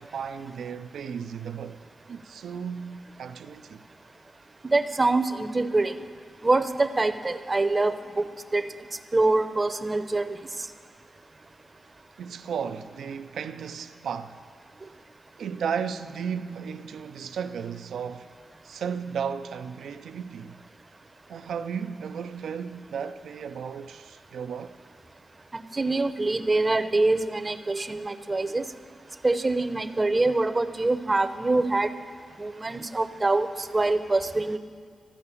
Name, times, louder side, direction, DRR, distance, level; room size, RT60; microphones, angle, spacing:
voice 1, 0.0-3.8 12.2-14.4 15.4-18.3 18.6-20.6 21.3-24.7, right 7 dB, 85° right, 0.4 m, -34 dB
voice 2, 4.6-5.9 6.4-8.2 8.5-8.7 9.1-10.4 25.5-28.6 29.2-31.9 32.4-33.5 33.7-34.6, right 2 dB, 30° right, 0.6 m, -24 dB
14.0 x 4.8 x 8.4 m
cardioid pair, 55°, 0 cm